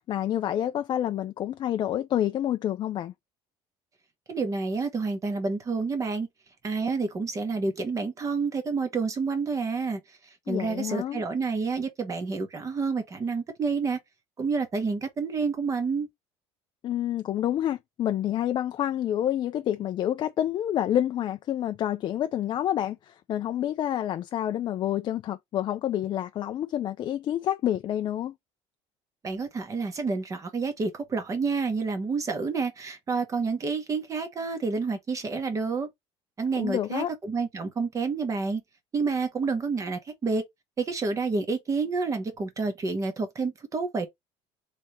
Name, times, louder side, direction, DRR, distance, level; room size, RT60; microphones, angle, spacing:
voice 1, 0.0-3.1 10.5-11.2 16.8-28.3 36.6-37.1, left 11 dB, 40° left, 0.4 m, -28 dB
voice 2, 4.3-6.3 6.6-10.0 10.5-14.0 14.4-16.1 29.2-35.9 36.4-38.6 38.9-40.4 40.8-44.1, right 4 dB, 25° right, 1.3 m, -29 dB
3.3 x 3.2 x 4.2 m
cardioid pair, 140°, 12 cm